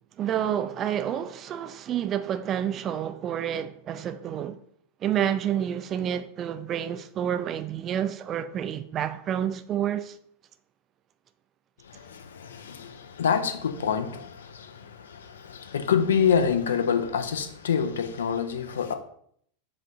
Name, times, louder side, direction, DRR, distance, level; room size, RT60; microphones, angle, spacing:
voice 1, 0.2-4.6 5.0-10.2, right 9 dB, 30° right, 0.3 m, -29 dB
voice 2, 11.8-18.9, left 7 dB, 65° left, 0.5 m, -27 dB
7.1 x 2.4 x 2.8 m
figure-of-eight pair, 90°, 0 cm